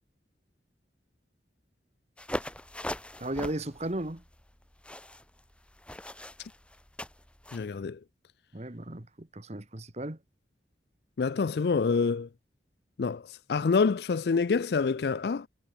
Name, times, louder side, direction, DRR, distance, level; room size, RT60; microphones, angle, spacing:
sound 1, 2.2-7.7, left 1 dB, 5° left, 2.3 m, -40 dB
voice 1, 3.2-4.2 8.5-10.2, right 1 dB, 40° right, 1.6 m, -35 dB
voice 2, 7.5-8.0 11.2-12.3 13.0-13.2 13.5-15.5, left 5 dB, 65° left, 0.4 m, -26 dB
head